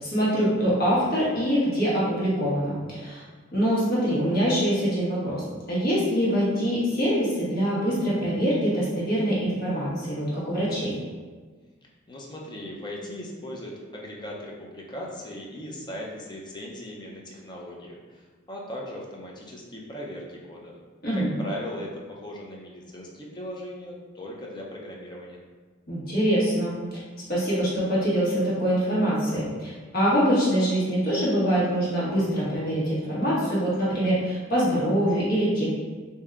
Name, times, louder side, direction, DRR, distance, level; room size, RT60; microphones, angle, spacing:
voice 1, 0.0-3.2 3.5-5.4 5.7-10.9 21.0-21.3 25.9-26.7 27.3-35.7, equal, 50° left, -8 dB, 1.3 m, -24 dB
voice 2, 12.1-20.7 21.1-25.4, left 1 dB, 25° left, -2 dB, 0.6 m, -38 dB
3.3 x 2.7 x 3.6 m, 1.4 s
head